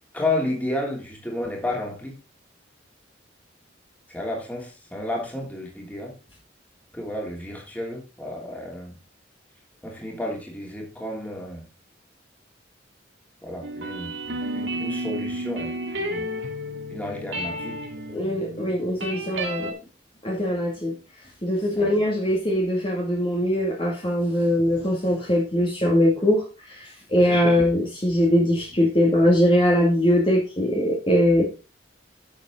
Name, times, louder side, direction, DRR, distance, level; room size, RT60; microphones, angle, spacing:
voice 1, 0.1-2.2 4.1-6.1 6.9-9.0 9.8-11.6 13.4-16.3 16.9-17.8 21.7-21.9 27.2-27.4, left 1 dB, 10° left, -1 dB, 3.1 m, -32 dB
sound 1, 13.6-19.7, right 1 dB, 80° right, 2.6 m, -32 dB
voice 2, 18.1-19.7 20.2-20.9 21.4-31.4, equal, 30° left, -2 dB, 2.4 m, -21 dB
11.0 x 7.3 x 3.9 m, 0.30 s
head